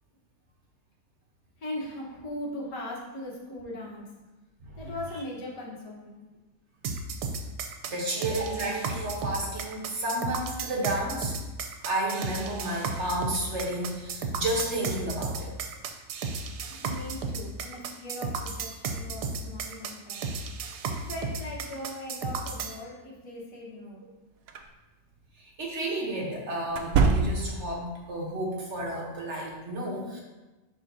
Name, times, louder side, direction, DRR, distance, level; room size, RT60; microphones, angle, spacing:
voice 1, 1.6-4.0 4.8-6.2 16.8-20.3 20.9-24.1, left 1 dB, 80° left, -4 dB, 1.9 m, -39 dB
sound 1, 6.8-22.8, right 4 dB, 85° right, 1.2 m, -34 dB
voice 2, 7.9-11.3 11.8-15.5 25.4-30.2, right 1 dB, 50° right, -2 dB, 1.2 m, -31 dB
sound 2, 24.5-24.7 26.7-27.7, right 4 dB, 70° right, 0.9 m, -24 dB
10.5 x 3.6 x 2.7 m, 1.1 s
omnidirectional pair, 1.7 m